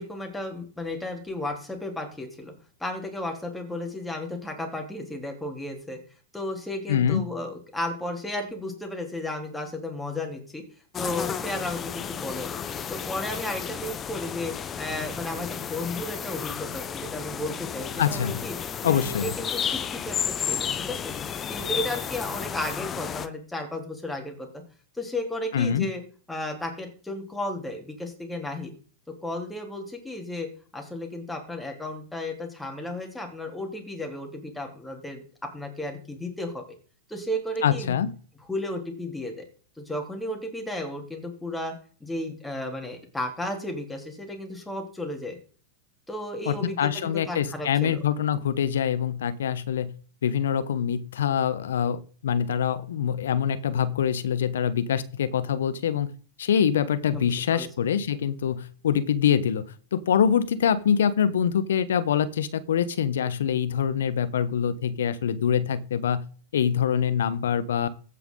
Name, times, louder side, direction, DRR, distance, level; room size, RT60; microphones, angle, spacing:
voice 1, 0.0-2.5 2.8-6.0 6.3-10.6 11.0-12.6 12.9-18.6 18.8-21.1 21.5-24.5 24.9-26.0 26.3-28.7 29.2-35.2 35.5-36.6 37.1-38.0 38.5-39.5 39.8-41.7 42.0-45.4 46.1-48.0 57.1-57.3 57.5-57.7, left 1 dB, 5° left, 2 dB, 3.6 m, -34 dB
voice 2, 6.9-7.2 18.0-18.4 18.8-19.3 25.5-25.9 37.6-38.1 46.5-49.9 50.2-56.1 56.4-66.2 66.5-67.9, left 8 dB, 70° left, 15 dB, 1.0 m, -25 dB
sound 1, 10.9-23.3, left 8 dB, 25° left, 0.9 m, -32 dB
15.5 x 5.9 x 4.0 m, 0.40 s
hypercardioid pair, 100°, 0 cm